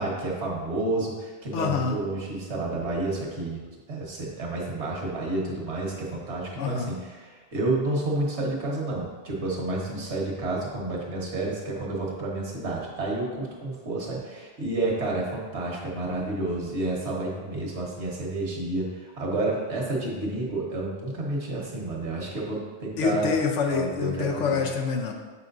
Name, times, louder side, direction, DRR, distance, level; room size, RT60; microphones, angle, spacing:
voice 1, 0.0-3.6 3.9-23.3 23.7-24.6, right 2 dB, 70° right, -2 dB, 1.5 m, -30 dB
voice 2, 1.5-2.0 6.6-7.0 23.0-25.1, left 6 dB, 85° left, 3 dB, 1.0 m, -26 dB
7.2 x 5.6 x 2.6 m, 1.4 s
omnidirectional pair, 1.2 m